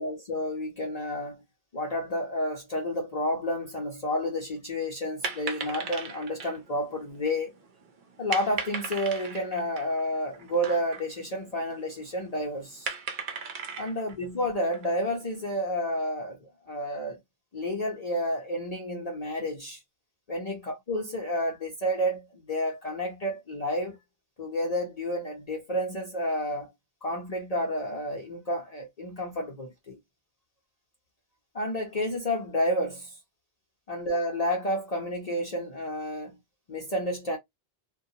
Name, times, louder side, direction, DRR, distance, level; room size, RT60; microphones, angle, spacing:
voice 1, 0.0-1.4 1.7-7.5 8.2-12.9 13.8-16.4 16.7-17.2 17.5-19.8 20.3-24.0 24.4-26.7 27.0-30.0 31.5-33.1 33.9-36.3 36.7-37.4, equal, 45° left, 0.7 m, -30 dB
sound 1, 5.2-15.6, right 5 dB, 60° right, 0.6 m, -39 dB
2.2 x 2.2 x 2.7 m
omnidirectional pair, 1.0 m